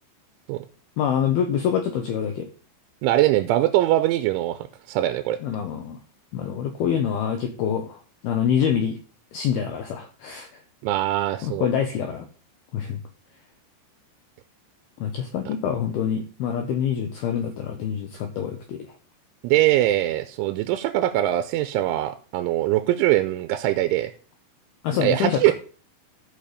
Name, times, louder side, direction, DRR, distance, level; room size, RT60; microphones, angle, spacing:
voice 1, 1.0-2.5 5.4-6.0 6.3-8.0 8.2-9.0 9.3-10.5 11.4-12.3 12.7-13.0 15.0-18.9 24.8-25.5, left 8 dB, 85° left, 5 dB, 2.2 m, -26 dB
voice 2, 3.0-5.4 10.8-11.7 19.4-24.1 25.0-25.5, right 14 dB, 85° right, 10 dB, 2.9 m, -22 dB
13.0 x 5.6 x 5.0 m, 0.39 s
omnidirectional pair, 5.8 m